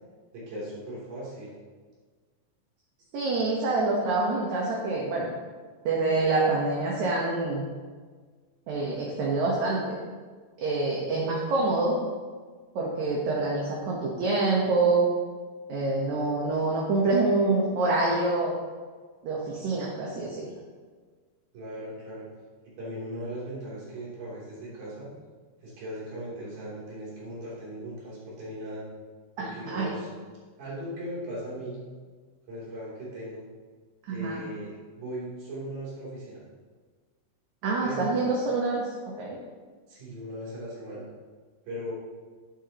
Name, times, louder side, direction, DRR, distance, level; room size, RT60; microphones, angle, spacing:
voice 1, 0.3-1.6 21.5-22.3 22.8-25.1 25.6-28.8 29.4-30.1 30.6-31.8 32.5-33.4 34.1-36.4 37.8-38.1 39.9-41.1 41.6-41.9, equal, 90° right, -8 dB, 5.0 m, -38 dB
voice 2, 3.1-5.3 5.9-7.6 8.7-10.0 10.6-12.0 12.8-15.1 15.7-18.5 19.2-20.5 29.4-30.0 34.1-34.4 37.6-38.9 39.2-39.4, right 3 dB, 65° right, -3 dB, 2.3 m, -26 dB
10.5 x 9.1 x 3.0 m, 1.5 s
omnidirectional pair, 4.0 m